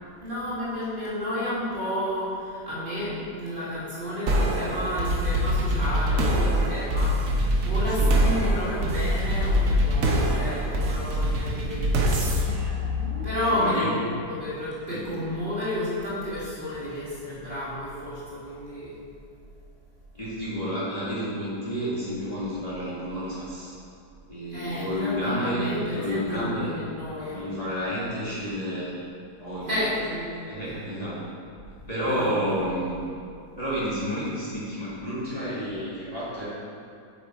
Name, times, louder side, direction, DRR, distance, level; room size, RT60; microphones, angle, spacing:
voice 1, 0.2-12.8 13.2-19.0 24.5-27.4 29.7-30.3 32.0-32.8, left 1 dB, 30° right, -10 dB, 2.2 m, -31 dB
sound 1, 4.3-13.7, equal, 55° right, 1.2 m, -24 dB
voice 2, 13.4-14.0 14.9-15.1 20.1-23.7 24.3-26.8 27.3-28.9 29.4-29.8 30.5-31.2 31.9-33.1 33.6-36.5, equal, 20° left, -11 dB, 2.0 m, -30 dB
8.1 x 6.3 x 4.5 m, 2.5 s
omnidirectional pair, 1.8 m